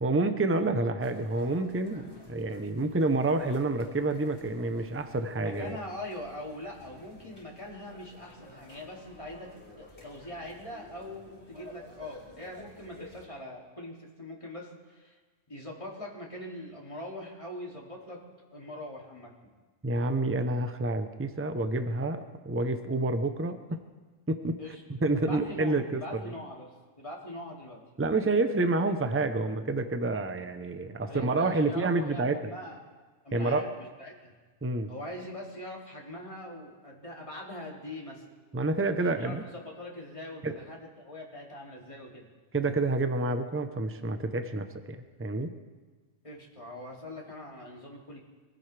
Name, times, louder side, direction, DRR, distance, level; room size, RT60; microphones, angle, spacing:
voice 1, 0.0-5.8 19.8-23.8 24.3-24.6 25.0-26.0 28.0-32.4 33.3-33.7 34.6-34.9 38.5-39.4 40.4-40.5 42.5-45.5, right 2 dB, 15° right, 8 dB, 0.7 m, -28 dB
sound 1, 1.0-13.3, left 1 dB, 60° left, 3.5 m, -52 dB
voice 2, 5.4-9.5 9.8-15.2 15.5-18.2 18.5-19.3 24.6-24.8 25.2-27.8 31.1-32.8 33.2-34.3 34.9-38.2 39.0-42.2 46.2-48.2, left 1 dB, 25° left, -3 dB, 2.8 m, -42 dB
24.0 x 15.5 x 3.4 m, 1.4 s
omnidirectional pair, 1.2 m